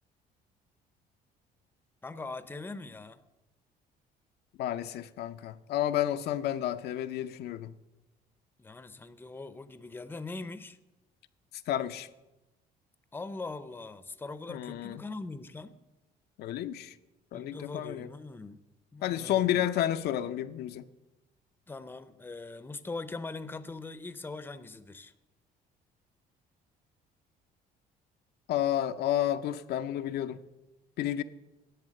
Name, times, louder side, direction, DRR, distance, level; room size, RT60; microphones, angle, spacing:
voice 1, 2.0-3.2 8.6-10.8 13.1-15.8 17.3-18.6 18.9-19.6 21.7-25.1, left 3 dB, 10° left, 0.7 m, -41 dB
voice 2, 4.6-7.7 11.7-12.1 14.5-15.0 16.4-16.9 17.3-18.1 19.0-20.9 28.5-30.4 31.0-31.2, left 11 dB, 70° left, 0.6 m, -31 dB
11.0 x 8.2 x 6.5 m
cardioid pair, 110°, 17 cm